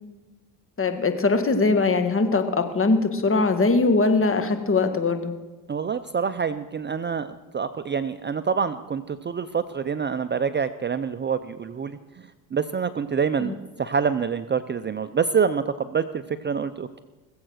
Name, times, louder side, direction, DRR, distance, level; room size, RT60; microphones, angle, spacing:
voice 1, 0.8-5.3 13.4-13.5, left 3 dB, 30° left, 8 dB, 1.8 m, -21 dB
voice 2, 5.7-12.0 12.5-17.0, right 6 dB, 25° right, 12 dB, 0.6 m, -26 dB
19.5 x 7.9 x 6.4 m, 1.2 s
supercardioid pair, 75°, 43 cm